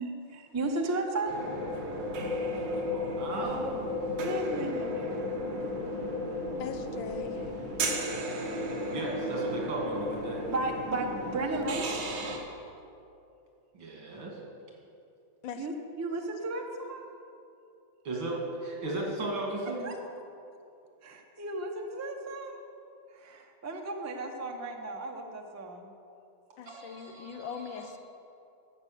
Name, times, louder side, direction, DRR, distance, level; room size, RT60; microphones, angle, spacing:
voice 1, 0.0-1.3 4.2-5.2 5.8-6.8 10.5-11.9 15.6-17.0 19.8-19.9 21.0-22.6 23.1-25.9, right 2 dB, 20° right, 3 dB, 0.4 m, -35 dB
sound 1, 1.3-12.4, left 1 dB, 70° right, 2.0 m, -34 dB
voice 2, 2.8-3.7 8.9-10.4 13.7-14.4 18.0-19.9 26.7-27.9, right 2 dB, 85° right, -2 dB, 3.1 m, -35 dB
voice 3, 6.6-7.5 15.4-15.7 26.6-28.0, left 6 dB, 85° left, 7 dB, 1.6 m, -40 dB
11.5 x 7.8 x 6.8 m, 2.6 s
omnidirectional pair, 2.1 m